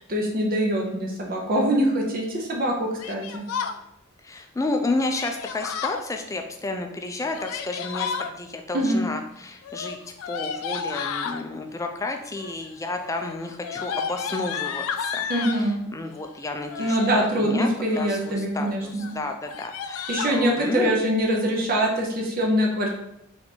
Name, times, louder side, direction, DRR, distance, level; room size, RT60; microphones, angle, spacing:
voice 1, 0.0-3.5 8.7-9.0 15.3-15.8 16.8-19.1 20.1-22.9, equal, 45° right, 0 dB, 0.6 m, -24 dB
Yell, 3.0-3.8 5.1-6.0 7.2-8.3 9.6-11.4 12.3-12.7 13.0-15.6 16.6-17.1 17.7-18.2 18.6-18.7 19.0-19.1 19.4-20.3, left 6 dB, 90° left, 0.4 m, -32 dB
voice 2, 4.2-10.0 10.3-17.7 18.0-20.9, left 2 dB, 15° left, 4 dB, 0.3 m, -31 dB
3.4 x 3.0 x 4.0 m, 0.81 s
head